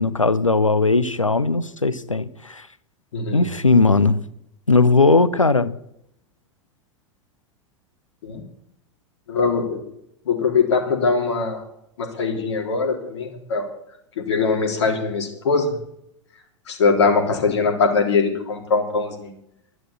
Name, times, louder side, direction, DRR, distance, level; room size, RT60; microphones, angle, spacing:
voice 1, 0.0-2.7 3.3-4.2 4.7-5.7, left 3 dB, 90° left, 0.8 m, -18 dB
voice 2, 3.1-3.5 8.2-8.4 9.3-9.8 10.3-11.6 12.0-13.7 14.2-15.8 16.7-19.3, left 4 dB, 60° left, 3.4 m, -21 dB
12.5 x 11.0 x 7.1 m
figure-of-eight pair, 90°, 16 cm